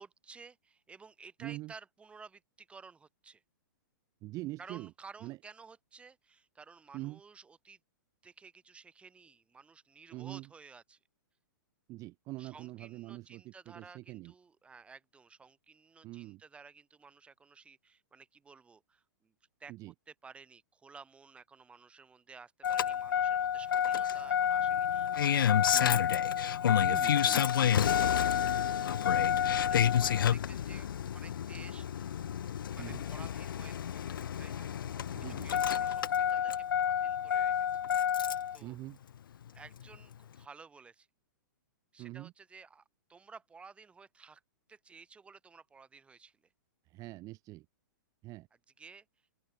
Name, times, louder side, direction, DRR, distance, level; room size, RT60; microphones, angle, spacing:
voice 1, 0.0-3.4 4.6-7.8 8.2-11.0 12.4-19.3 19.6-19.7 20.1-26.1 28.3-28.5 29.6-32.1 32.7-34.7 35.2-37.7 38.5-38.8 39.5-41.1 41.9-44.4 44.7-46.4 48.8-49.1, right 5 dB, 10° right, 2.6 m, -54 dB
voice 2, 1.4-1.7 4.2-4.9 5.2-5.4 6.9-7.2 10.1-10.5 11.9-14.3 16.0-16.4 19.7-19.9 25.7-26.0 26.8-28.0 32.8-33.0 35.1-35.5 38.6-39.0 42.0-42.3 46.9-47.6 48.2-48.5, right 19 dB, 30° right, 3.2 m, -44 dB
Engine starting, 22.6-38.6 39.8-39.9, left 9 dB, 85° left, 0.6 m, -29 dB
open air
hypercardioid pair, 145°, 11 cm